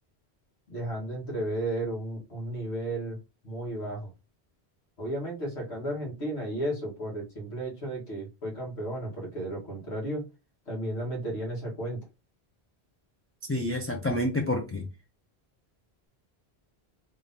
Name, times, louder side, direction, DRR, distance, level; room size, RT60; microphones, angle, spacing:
voice 1, 0.7-3.2 3.4-4.1 5.0-10.3 10.7-12.0, right 1 dB, 85° left, 1.7 m, -33 dB
voice 2, 13.5-14.9, left 1 dB, 20° left, 0.3 m, -28 dB
3.3 x 2.6 x 3.4 m
omnidirectional pair, 1.1 m